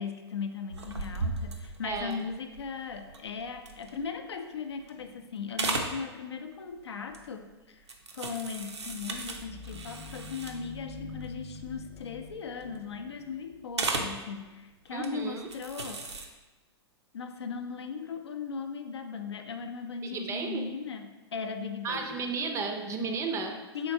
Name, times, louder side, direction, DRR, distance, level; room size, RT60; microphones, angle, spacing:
voice 1, 0.0-7.8 8.1-16.3 17.1-22.2 23.7-23.9, left 5 dB, 75° left, 6 dB, 0.4 m, -38 dB
sound 1, 0.7-4.4 4.8-5.2 5.5-6.0 7.1-7.4 7.9-10.8 11.2-11.3 11.6-11.8 12.1-12.8 13.7-14.2 14.9-15.1 15.5-16.3, right 3 dB, 80° right, 0.5 m, -36 dB
voice 2, 1.8-2.2 14.9-15.5 20.0-20.6 21.8-23.6, right 4 dB, 20° right, 4 dB, 0.4 m, -33 dB
sound 2, 8.7-14.1, left 4 dB, 35° left, 0.8 m, -46 dB
4.4 x 3.6 x 2.6 m, 1.2 s
figure-of-eight pair, 105°, 14 cm